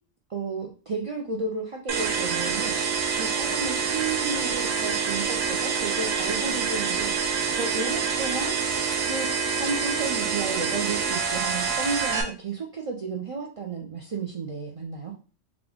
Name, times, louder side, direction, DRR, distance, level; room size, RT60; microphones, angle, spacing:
voice 1, 0.3-7.1 7.5-8.6 9.0-15.1, right 4 dB, 65° right, 0 dB, 0.3 m, -33 dB
sound 1, 1.9-12.2, right 5 dB, 85° right, 1.1 m, -26 dB
3.7 x 2.3 x 3.5 m, 0.37 s
omnidirectional pair, 1.3 m